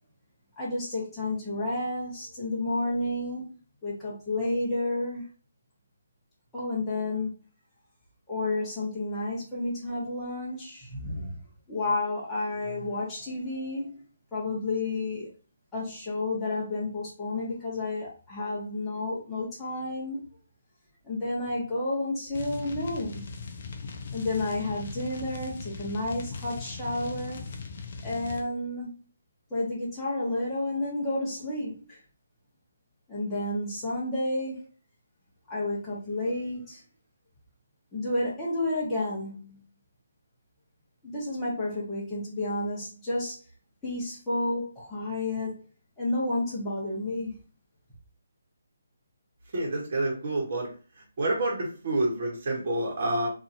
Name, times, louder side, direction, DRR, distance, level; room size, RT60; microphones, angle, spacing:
voice 1, 0.6-3.5 3.8-5.3 6.5-7.3 8.3-11.4 11.7-14.0 14.3-15.3 15.7-20.2 21.0-23.2 24.1-27.5 28.0-28.9 29.5-32.0 33.1-34.7 35.5-36.8 37.9-39.6 41.0-43.4 43.8-45.7 46.0-47.4, left 2 dB, 10° left, 1.0 m, -31 dB
sound 1, 22.3-28.5, left 4 dB, 45° left, 0.5 m, -39 dB
voice 2, 49.5-50.7 51.2-53.3, right 2 dB, 45° right, 1.2 m, -28 dB
2.8 x 2.6 x 2.6 m
hypercardioid pair, 170°, 0 cm